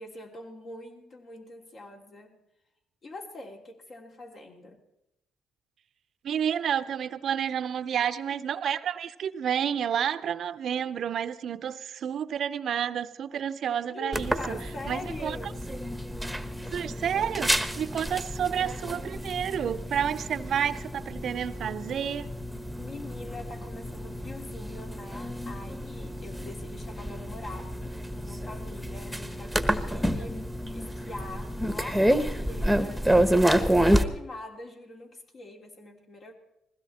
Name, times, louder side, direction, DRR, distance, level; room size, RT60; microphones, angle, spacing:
voice 1, 0.0-2.4 3.0-4.8 13.9-15.6 22.8-27.9 28.1-30.5 30.7-36.3, left 1 dB, 50° left, 1 dB, 3.1 m, -43 dB
voice 2, 6.2-14.6 14.9-15.4 16.7-22.3, right 8 dB, 65° right, 13 dB, 0.7 m, -30 dB
sound 1, 14.1-34.0, equal, ahead, 1.3 m, -29 dB
20.5 x 16.0 x 4.3 m, 0.84 s
supercardioid pair, 70°, 0 cm